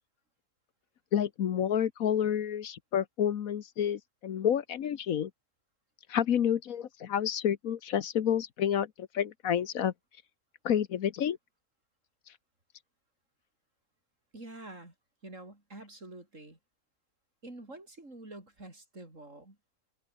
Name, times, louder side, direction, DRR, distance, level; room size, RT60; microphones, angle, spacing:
voice 1, 1.1-5.3 6.1-9.9 10.6-11.4, left 9 dB, 75° left, 1.4 m, -29 dB
voice 2, 14.3-14.9 15.2-16.6 17.4-19.6, right 2 dB, 60° right, 6.4 m, -47 dB
open air
omnidirectional pair, 1.5 m